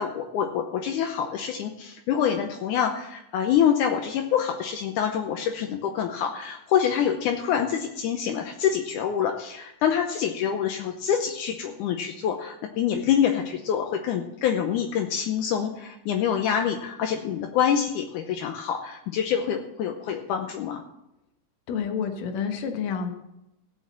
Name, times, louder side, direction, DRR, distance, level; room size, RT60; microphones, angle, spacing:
voice 1, 0.0-20.8, left 8 dB, 80° left, 4 dB, 2.3 m, -26 dB
voice 2, 21.7-23.1, left 6 dB, 65° left, 5 dB, 2.4 m, -29 dB
16.0 x 6.4 x 7.2 m, 0.86 s
omnidirectional pair, 3.7 m